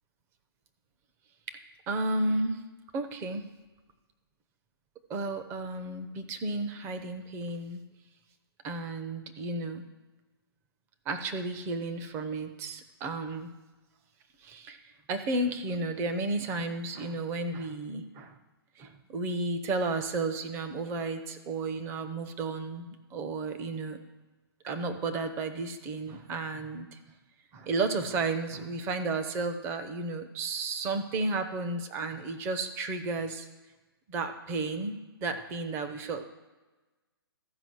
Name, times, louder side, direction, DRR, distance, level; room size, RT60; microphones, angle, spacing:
voice 1, 1.9-2.6 2.9-3.5 5.1-7.8 8.6-9.8 11.1-13.5 14.4-14.8 15.1-18.4 18.8-24.0 24.6-27.0 27.5-33.5 34.1-36.2, right 3 dB, 20° right, 8 dB, 0.7 m, -33 dB
14.0 x 5.1 x 6.3 m, 1.2 s
hypercardioid pair, 150°, 13 cm